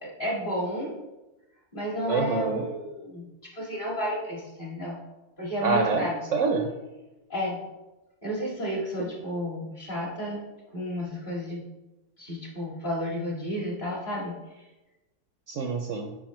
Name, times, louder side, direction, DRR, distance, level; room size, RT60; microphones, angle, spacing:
voice 1, 0.0-1.0 1.7-3.2 3.5-5.0 5.4-6.2 7.3-7.6 8.2-10.4 10.7-11.6 12.2-14.3, equal, 35° left, -4 dB, 2.0 m, -31 dB
voice 2, 2.1-2.7 5.6-6.1 6.3-6.7 15.5-16.1, right 4 dB, 65° right, 4 dB, 0.9 m, -26 dB
8.8 x 5.1 x 3.1 m, 1.0 s
omnidirectional pair, 1.6 m